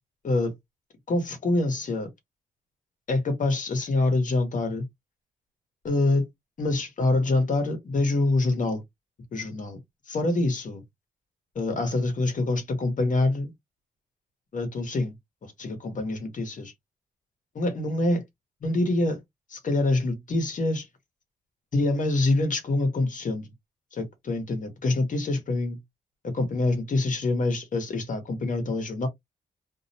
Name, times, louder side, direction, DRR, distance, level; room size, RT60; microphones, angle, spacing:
voice 1, 1.1-2.1 3.1-4.8 5.8-6.3 6.6-8.8 9.3-9.8 10.1-10.8 11.5-13.5 14.5-15.1 15.4-16.7 17.5-18.2 18.6-19.2 19.5-20.9 21.7-23.5 23.9-25.8 26.3-29.1, left 2 dB, 50° left, 1.0 m, -25 dB
2.5 x 2.0 x 2.6 m
cardioid pair, 85°, 17 cm